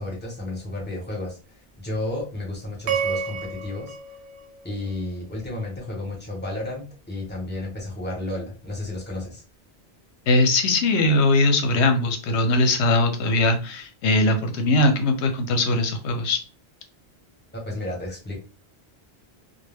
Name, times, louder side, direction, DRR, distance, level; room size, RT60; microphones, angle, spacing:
voice 1, 0.0-4.0 4.6-9.4 17.5-18.4, left 2 dB, 10° left, -3 dB, 0.7 m, -32 dB
sound 1, 2.9-5.2, right 6 dB, 75° right, 0.8 m, -30 dB
voice 2, 10.3-16.4, left 2 dB, 75° left, 5 dB, 0.9 m, -20 dB
2.2 x 2.1 x 3.3 m, 0.35 s
omnidirectional pair, 1.2 m